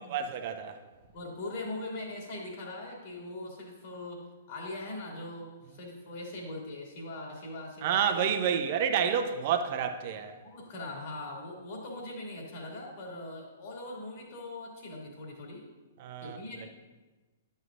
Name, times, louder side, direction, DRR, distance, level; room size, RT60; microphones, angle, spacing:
voice 1, 0.1-0.8 7.8-10.3 16.0-16.4, right 8 dB, 45° right, 7 dB, 0.7 m, -29 dB
voice 2, 1.1-8.0 10.4-15.7 16.2-16.7, left 2 dB, 50° left, -2 dB, 2.4 m, -41 dB
11.0 x 6.5 x 2.5 m, 1.2 s
figure-of-eight pair, 115°, 0 cm